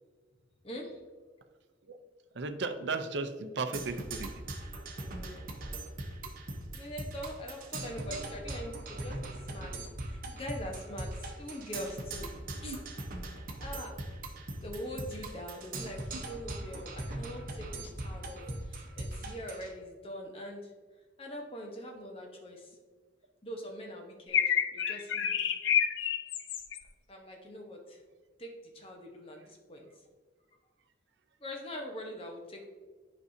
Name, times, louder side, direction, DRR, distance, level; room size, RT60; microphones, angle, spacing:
voice 1, 0.6-1.0 5.0-5.5 6.7-12.3 12.6-12.8 13.6-14.0 14.6-20.7 21.2-22.8 23.4-25.5 27.1-28.0 28.4-29.9 31.4-32.7, equal, 30° left, 1 dB, 1.0 m, -43 dB
voice 2, 2.3-4.3 7.9-8.2 12.6-12.8 18.4-18.5, right 3 dB, 65° right, 8 dB, 0.6 m, -36 dB
Percussion, 3.7-19.7, right 2 dB, 50° right, 0.9 m, -40 dB
sound 1, 24.3-26.8, left 8 dB, 80° left, 0.5 m, -29 dB
9.6 x 5.4 x 2.7 m, 1.4 s
head